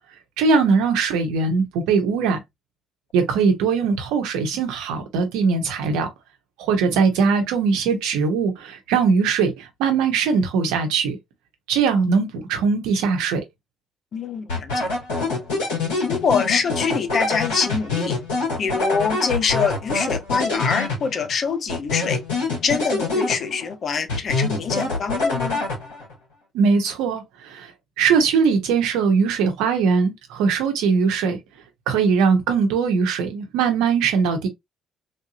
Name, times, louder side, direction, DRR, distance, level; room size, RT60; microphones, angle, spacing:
voice 1, 0.4-2.4 3.1-6.1 6.6-11.2 11.7-13.4 26.5-27.7 28.0-31.4 31.9-34.5, right 5 dB, 70° right, 0.9 m, -20 dB
voice 2, 14.1-14.9 16.1-18.2 18.6-22.2 22.6-25.6, left 5 dB, 50° left, 0.7 m, -24 dB
sound 1, 14.5-21.3 21.7-23.7 24.1-26.1, left 3 dB, 80° left, 1.8 m, -25 dB
3.4 x 2.7 x 2.6 m
hypercardioid pair, 45°, 0 cm